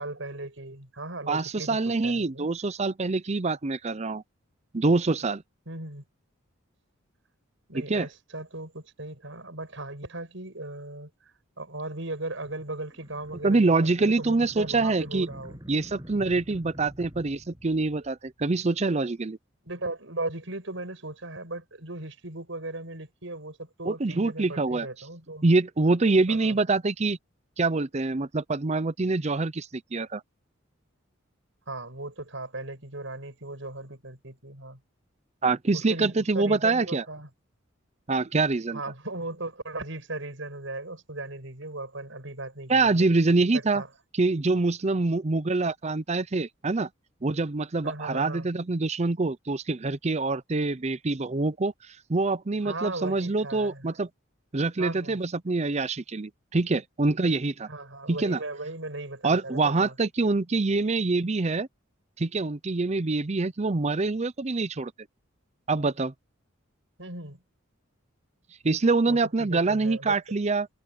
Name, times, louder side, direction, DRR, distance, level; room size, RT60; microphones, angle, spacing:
voice 1, 0.0-1.8 2.0-2.5 5.7-6.0 7.7-15.6 19.6-25.5 26.3-26.6 31.7-34.8 35.7-37.3 38.7-43.1 43.5-43.9 47.8-48.5 52.6-54.0 54.5-55.2 57.7-60.0 67.0-67.4 69.1-70.2, right 2 dB, 70° right, 7.2 m, -37 dB
voice 2, 1.3-4.2 4.7-5.4 7.7-8.1 13.4-15.3 15.7-19.4 23.8-24.9 25.4-27.2 27.6-30.2 35.4-37.0 38.1-38.8 42.7-43.8 44.1-46.9 47.2-54.1 54.5-57.7 58.1-58.4 59.2-61.7 62.2-64.9 65.7-66.1 68.6-70.7, right 3 dB, 35° right, 0.6 m, -25 dB
sound 1, 12.4-18.3, equal, 20° right, 7.3 m, -47 dB
head